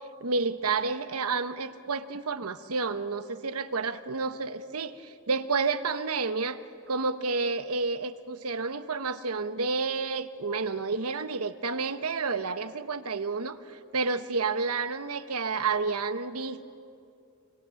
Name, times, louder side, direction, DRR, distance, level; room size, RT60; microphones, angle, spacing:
voice 1, 0.2-6.6 6.9-16.6, right 4 dB, 80° right, 11 dB, 1.1 m, -30 dB
27.5 x 24.5 x 7.1 m, 2.6 s
head